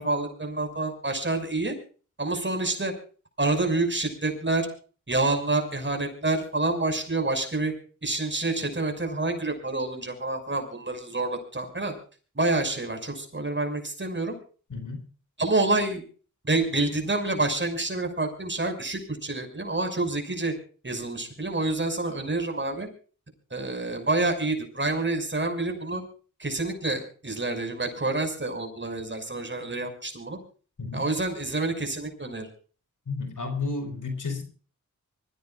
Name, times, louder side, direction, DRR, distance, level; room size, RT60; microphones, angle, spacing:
voice 1, 0.0-1.7 2.2-2.9 3.4-4.7 5.1-7.7 8.0-11.9 12.3-14.4 15.4-16.0 16.4-20.5 20.8-22.9 23.5-26.0 26.4-30.4 30.9-32.5, right 2 dB, 35° right, 5 dB, 6.1 m, -28 dB
voice 2, 14.7-15.0 30.8-31.0 33.1-34.4, left 3 dB, 75° left, 6 dB, 4.8 m, -32 dB
24.5 x 16.0 x 2.5 m, 0.40 s
cardioid pair, 50°, 31 cm